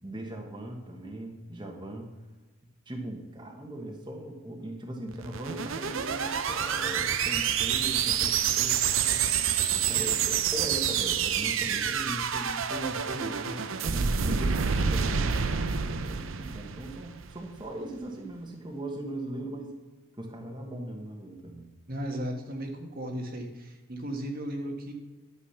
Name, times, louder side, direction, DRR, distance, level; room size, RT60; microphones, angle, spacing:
voice 1, 0.0-2.1 2.9-9.2 9.7-19.7 20.2-21.7, right 1 dB, 20° right, 1 dB, 1.4 m, -39 dB
sound 1, 5.1-17.5, right 7 dB, 65° right, 0.7 m, -28 dB
voice 2, 21.9-24.9, equal, 45° right, 2 dB, 1.4 m, -35 dB
11.5 x 7.6 x 5.7 m, 1.2 s
head